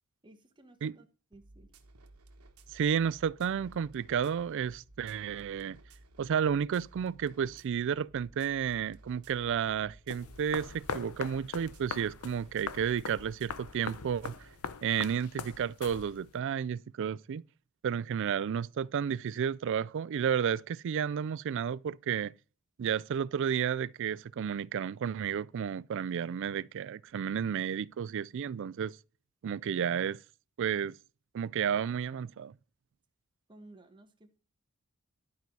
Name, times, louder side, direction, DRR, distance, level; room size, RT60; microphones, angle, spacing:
voice 1, 0.2-1.7 33.5-34.4, right 2 dB, 20° right, 1.2 m, -56 dB
sound 1, 1.3-14.6, right 2 dB, 80° right, 1.2 m, -57 dB
voice 2, 2.7-5.8 6.2-14.3 14.8-17.4 17.8-22.3 22.8-29.0 29.4-30.2 30.6-30.9 31.3-32.5, right 8 dB, 60° right, 0.3 m, -32 dB
sound 2, 10.1-16.4, left 5 dB, 85° left, 0.7 m, -42 dB
11.5 x 4.7 x 5.3 m
head